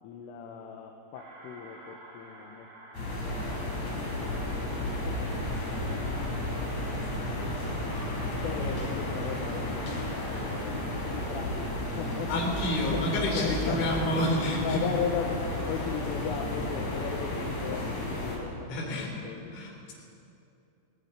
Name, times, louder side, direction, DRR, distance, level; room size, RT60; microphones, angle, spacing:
voice 1, 0.0-2.7 3.1-7.2 8.4-13.1 13.3-14.3 14.6-19.6, left 7 dB, 85° left, 2 dB, 3.8 m, -38 dB
sound 1, 1.1-13.8, right 2 dB, 65° right, 5.7 m, -53 dB
sound 2, 2.9-18.4, left 1 dB, 35° left, 5.4 m, -33 dB
sound 3, 5.0-17.0, equal, 10° right, 7.7 m, -43 dB
voice 2, 8.4-8.7 12.3-14.9 18.7-19.2 19.5-19.9, left 1 dB, 70° left, -1 dB, 6.3 m, -30 dB
19.0 x 18.0 x 9.8 m, 2.7 s
omnidirectional pair, 5.7 m